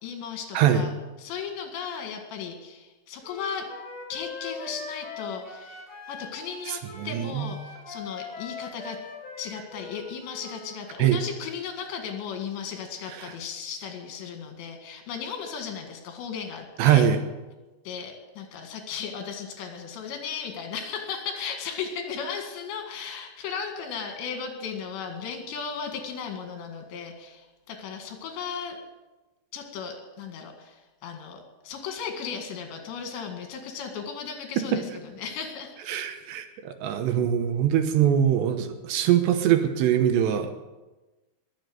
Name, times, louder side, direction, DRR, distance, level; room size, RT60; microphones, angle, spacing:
voice 1, 0.0-0.9 1.2-3.7 4.1-9.0 9.4-17.1 17.9-28.8 29.5-35.7, left 6 dB, 75° left, 4 dB, 4.2 m, -36 dB
Wind instrument woodwind instrument, 3.2-10.8, left 4 dB, 40° left, 3.9 m, -41 dB
voice 2, 6.7-7.5 11.0-11.2 16.8-17.2 35.9-40.5, right 10 dB, 75° right, 7 dB, 3.2 m, -22 dB
21.5 x 7.5 x 7.8 m, 1.1 s
omnidirectional pair, 5.2 m